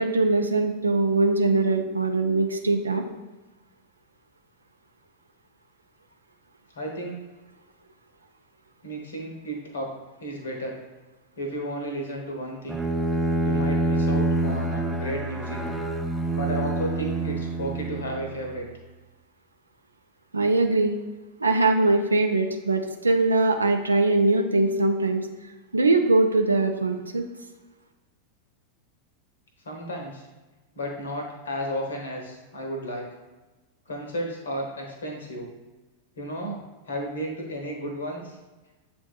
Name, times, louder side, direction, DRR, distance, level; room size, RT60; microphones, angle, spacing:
voice 1, 0.0-3.0 20.3-21.0 21.4-25.3 25.7-27.3, right 2 dB, 80° right, 5 dB, 0.4 m, -22 dB
voice 2, 6.7-7.2 8.8-9.9 10.2-10.8 11.4-12.8 13.4-15.6 16.3-18.7 29.6-30.3 30.7-33.1 33.9-35.5 36.2-36.6 36.9-38.4, equal, 65° left, 1 dB, 1.0 m, -33 dB
Bowed string instrument, 12.7-18.5, right 2 dB, 5° right, 0.4 m, -26 dB
7.4 x 2.6 x 2.2 m, 1.2 s
figure-of-eight pair, 90°, 0 cm